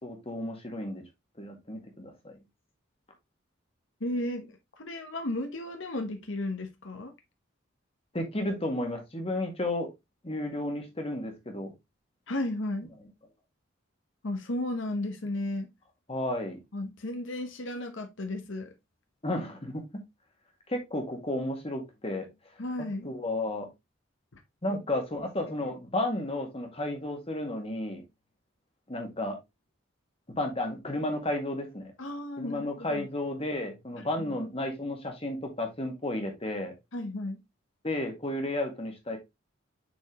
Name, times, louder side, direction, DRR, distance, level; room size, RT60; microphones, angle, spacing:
voice 1, 0.0-1.0 1.4-2.4 8.1-9.9 10.2-11.7 16.1-16.6 19.2-19.9 20.7-22.3 23.0-23.7 24.6-28.0 28.9-29.4 30.4-31.8 32.4-36.7 37.8-39.2, left 1 dB, 30° left, 1.8 m, -32 dB
voice 2, 4.0-7.1 12.3-12.9 14.2-15.7 16.7-18.7 22.6-23.1 24.3-24.4 24.7-24.8 32.0-33.1 34.2-34.4 36.9-37.4, left 1 dB, 75° left, 1.1 m, -34 dB
7.4 x 4.4 x 3.0 m
head